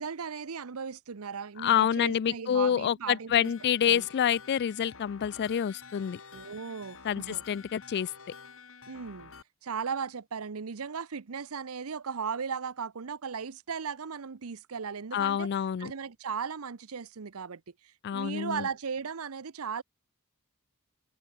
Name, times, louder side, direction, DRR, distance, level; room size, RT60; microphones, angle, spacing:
voice 1, 0.0-3.5 3.9-4.1 6.3-7.4 8.9-9.3 9.6-15.5 15.8-19.8, right 6 dB, 70° right, 0.7 m, -37 dB
voice 2, 1.6-6.2 7.0-8.1 15.1-15.9 18.0-18.7, left 9 dB, 50° left, 0.3 m, -27 dB
sound 1, 3.4-9.4, left 5 dB, 65° left, 4.4 m, -50 dB
head